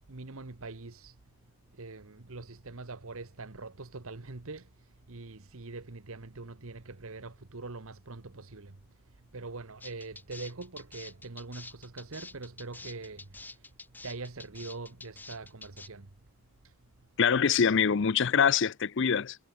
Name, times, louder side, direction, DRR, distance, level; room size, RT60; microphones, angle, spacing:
voice 1, 0.1-1.2 1.7-8.8 9.3-13.7 14.0-16.1 16.6-16.7, right 3 dB, 65° right, 1.3 m, -43 dB
sound 1, 9.8-15.9, left 3 dB, 10° left, 0.9 m, -47 dB
voice 2, 17.2-19.4, left 6 dB, 55° left, 0.5 m, -24 dB
head